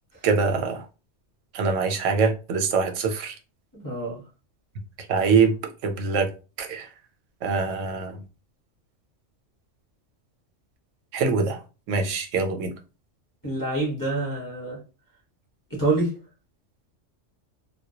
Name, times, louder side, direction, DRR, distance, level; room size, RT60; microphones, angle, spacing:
voice 1, 0.2-0.8 1.5-3.3 5.1-5.6 5.8-6.3 6.6-6.9 7.4-8.2 11.1-11.6 11.9-12.7, right 5 dB, 90° right, 5 dB, 0.9 m, -23 dB
voice 2, 3.7-4.2 13.4-14.8 15.7-16.2, right 2 dB, 20° left, -5 dB, 0.7 m, -26 dB
2.2 x 2.1 x 2.7 m, 0.32 s
omnidirectional pair, 1.3 m